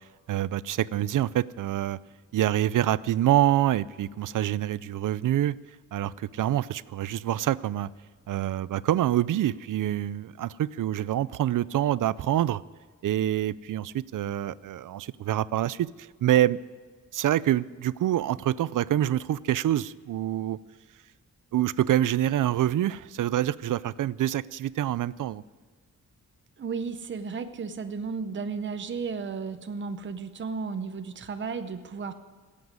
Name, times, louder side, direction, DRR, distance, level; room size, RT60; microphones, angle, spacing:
voice 1, 0.3-2.0 2.3-5.6 5.9-7.9 8.3-12.6 13.0-16.6 17.1-20.6 21.5-25.4, right 12 dB, 75° right, 19 dB, 0.5 m, -26 dB
voice 2, 26.6-32.1, right 5 dB, 35° right, 8 dB, 0.7 m, -34 dB
16.5 x 8.5 x 9.4 m, 1.5 s
wide cardioid pair, 155°, 32 cm